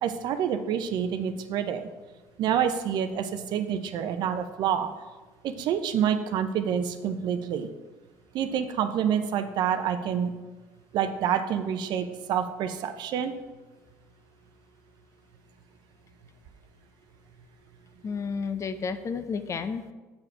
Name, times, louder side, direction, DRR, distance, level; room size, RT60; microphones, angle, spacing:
voice 1, 0.0-1.9 2.4-4.9 5.4-7.7 8.3-10.3 10.9-13.3, right 8 dB, 65° right, 9 dB, 0.7 m, -27 dB
voice 2, 18.0-19.9, left 5 dB, 40° left, 10 dB, 0.7 m, -31 dB
7.3 x 4.9 x 4.7 m, 1.2 s
supercardioid pair, 75°, 8 cm